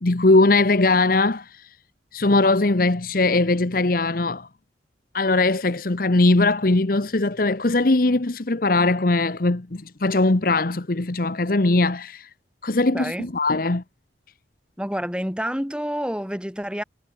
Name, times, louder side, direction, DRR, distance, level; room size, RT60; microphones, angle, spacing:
voice 1, 0.0-1.7 2.1-4.5 5.1-12.3 12.6-13.8, left 2 dB, 55° left, 1.0 m, -20 dB
voice 2, 12.9-13.3 14.8-16.8, equal, 5° right, 5.6 m, -28 dB
head